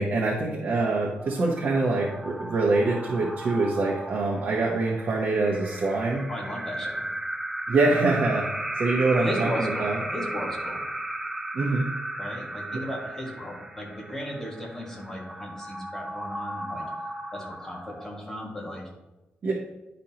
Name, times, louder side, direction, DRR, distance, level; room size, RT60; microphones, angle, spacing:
voice 1, 0.0-6.3 7.7-10.0 11.5-11.9 12.7-12.8 19.4-19.5, right 3 dB, 45° right, -3 dB, 1.0 m, -25 dB
sound 1, 1.1-18.5, right 1 dB, 5° right, 0.5 m, -35 dB
voice 2, 6.3-7.1 9.1-10.8 12.2-16.9 17.3-18.9, left 1 dB, 10° left, -2 dB, 1.6 m, -35 dB
10.0 x 5.2 x 2.9 m, 0.99 s
wide cardioid pair, 155°, 4 cm